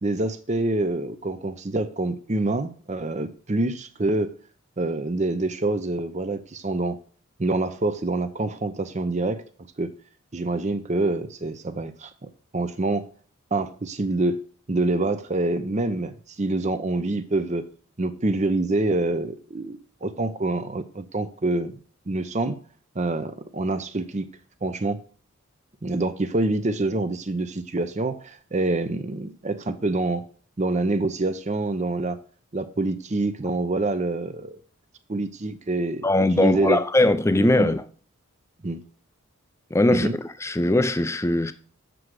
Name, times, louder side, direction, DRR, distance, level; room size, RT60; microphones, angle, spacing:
voice 1, 0.0-4.3 4.8-7.0 7.4-9.4 9.8-9.9 10.3-13.0 13.5-14.4 14.7-17.6 18.0-21.7 22.1-22.6 23.0-24.3 24.6-25.0 25.8-30.2 30.6-32.2 32.5-34.6 35.1-36.1 36.3-36.8 37.4-37.7 38.6-38.8 39.9-40.1, right 2 dB, 30° right, 0.6 m, -26 dB
voice 2, 36.0-37.8 39.7-41.5, left 2 dB, 15° left, 0.4 m, -20 dB
7.6 x 6.4 x 4.8 m
head